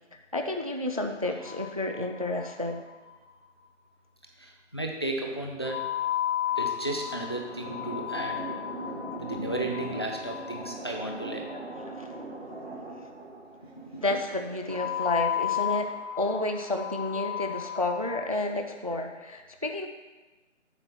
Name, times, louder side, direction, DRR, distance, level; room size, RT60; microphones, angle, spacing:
voice 1, 0.3-2.8 11.9-12.1 14.0-19.9, left 2 dB, 30° right, 5 dB, 0.4 m, -31 dB
sound 1, 1.4-2.4 2.6-2.7 3.0-3.1 5.6-11.7 14.7-18.3, left 11 dB, ahead, 1.3 m, -33 dB
voice 2, 4.4-6.0 6.5-8.4 9.2-11.5 13.9-14.0, right 1 dB, 20° left, 2 dB, 0.5 m, -34 dB
sound 2, 6.5-15.1, right 2 dB, 55° right, 1.7 m, -41 dB
7.7 x 7.1 x 4.7 m, 1.2 s
figure-of-eight pair, 150°, 37 cm